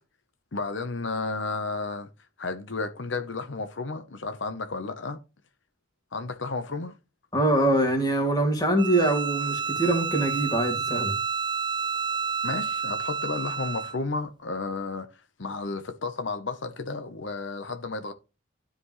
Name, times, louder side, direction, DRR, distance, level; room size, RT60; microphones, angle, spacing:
voice 1, 0.5-2.1 2.4-5.2 6.1-6.9 12.4-18.1, left 3 dB, 70° left, 0.9 m, -32 dB
voice 2, 7.3-11.1, right 1 dB, 20° left, 2.3 m, -24 dB
Bowed string instrument, 8.8-14.0, right 5 dB, 25° right, 0.4 m, -30 dB
12.5 x 5.2 x 3.2 m
head